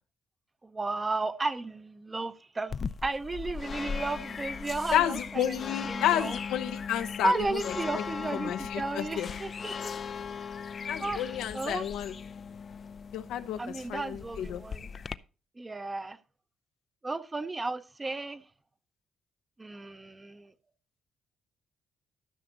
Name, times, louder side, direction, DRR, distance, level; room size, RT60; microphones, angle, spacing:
voice 1, 0.6-2.8 3.0-6.4 7.2-9.9 10.3-10.6 11.0-11.8 13.6-14.9 15.6-16.2 17.0-18.4 19.6-20.5, right 3 dB, 20° right, 0.7 m, -34 dB
sound 1, 2.7-15.2, left 6 dB, 45° left, 0.4 m, -38 dB
voice 2, 4.9-7.6 8.4-9.3 10.9-12.1 13.1-13.6 13.9-14.6, left 10 dB, 90° left, 0.7 m, -30 dB
13.0 x 5.8 x 4.0 m
cardioid pair, 90°, 0 cm